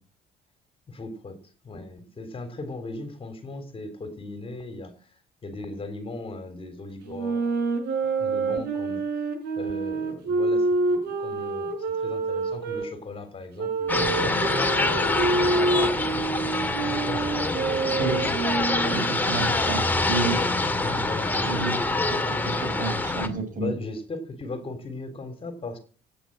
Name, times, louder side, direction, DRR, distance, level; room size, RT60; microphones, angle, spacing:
voice 1, 0.9-1.4 1.6-4.9 5.4-7.5 8.2-9.0 9.6-16.0 16.7-19.1 19.4-19.9 20.2-21.7 22.6-22.9 23.6-25.8, left 2 dB, 35° left, 3.4 m, -37 dB
sound 1, 7.0-12.9 13.6-19.0, right 3 dB, 85° right, 4.7 m, -27 dB
sound 2, 13.9-23.3, left 2 dB, 10° left, 2.4 m, -25 dB
voice 2, 18.8-19.8 20.1-20.4 21.3-21.7 22.1-23.7, right 4 dB, 50° right, 7.1 m, -30 dB
16.5 x 8.7 x 7.7 m
cardioid pair, 110°, 17 cm